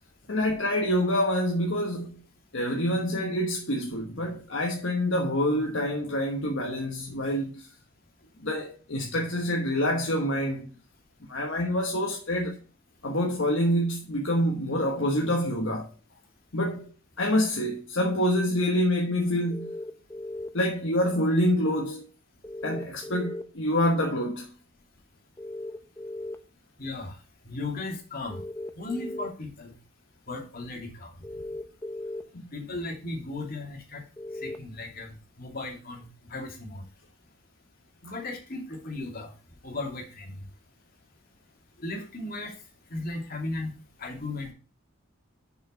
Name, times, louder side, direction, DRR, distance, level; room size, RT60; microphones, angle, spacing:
voice 1, 0.3-2.2 2.5-7.7 8.4-10.7 11.3-12.6 13.0-15.9 16.5-16.8 17.2-19.7 20.5-22.1 22.6-24.5, equal, 60° left, 1.2 m, -26 dB
sound 1, 19.5-20.5 22.4-23.4 25.4-26.4 28.3-29.3 31.2-32.2 34.2-34.6, left 1 dB, 10° left, 0.7 m, -37 dB
voice 2, 26.8-27.2 27.4-28.4 28.8-29.7 30.3-31.1 32.5-34.0 34.4-35.1 35.4-36.8 38.0-39.3 39.6-40.4 41.8-42.5 42.9-43.7 44.0-44.5, left 2 dB, 45° left, 2.5 m, -36 dB
6.6 x 5.6 x 5.6 m
head